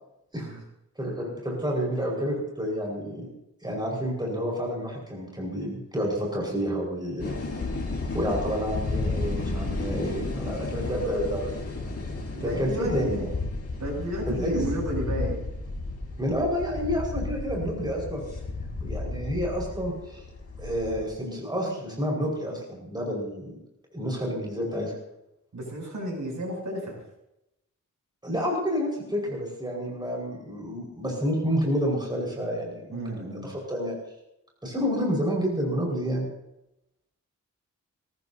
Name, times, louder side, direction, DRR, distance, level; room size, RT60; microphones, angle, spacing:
voice 1, 1.0-3.3 3.6-7.4 8.1-11.6 12.4-13.3 14.3-14.6 16.2-18.2 18.8-20.2 20.6-23.6 23.9-24.9 28.2-34.0 34.6-36.3, equal, 15° right, -3 dB, 5.3 m, -29 dB
sound 1, 7.2-21.1, left 3 dB, 50° left, 3.7 m, -33 dB
voice 2, 10.8-11.1 12.3-13.3 13.8-15.4 25.5-27.0 32.9-33.5, right 1 dB, 65° right, -1 dB, 7.7 m, -32 dB
22.5 x 19.0 x 2.8 m, 0.86 s
wide cardioid pair, 130°, 32 cm